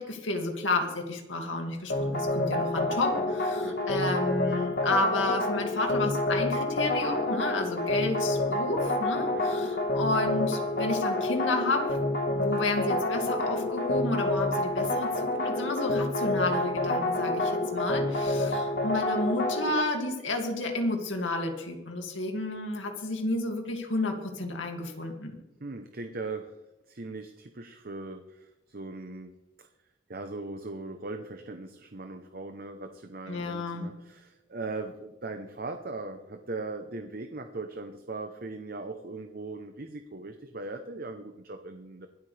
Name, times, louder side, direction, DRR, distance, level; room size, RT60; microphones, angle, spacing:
voice 1, 0.0-11.8 12.3-25.4 33.3-33.9, left 2 dB, 75° left, 3 dB, 2.4 m, -31 dB
sound 1, 1.9-19.8, left 1 dB, 50° left, 1.5 m, -28 dB
voice 2, 3.1-3.8 9.3-9.5 18.4-18.6 25.6-26.6 26.9-29.3 29.6-29.7 30.1-42.1, right 3 dB, 50° right, 7 dB, 0.9 m, -39 dB
24.5 x 8.6 x 3.4 m, 1.0 s
head